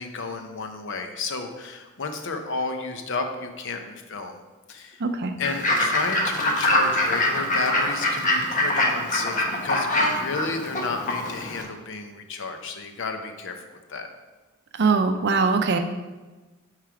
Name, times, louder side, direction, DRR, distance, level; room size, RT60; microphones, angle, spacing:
voice 1, 0.0-4.4 4.7-5.0 5.4-13.5 13.9-14.1, left 4 dB, 60° left, 6 dB, 0.7 m, -32 dB
voice 2, 5.0-5.3 14.7-15.8, right 4 dB, 50° right, 6 dB, 0.5 m, -22 dB
Fowl / Bird, 5.4-11.6, left 1 dB, 35° left, 1.1 m, -24 dB
9.1 x 3.3 x 4.9 m, 1.2 s
head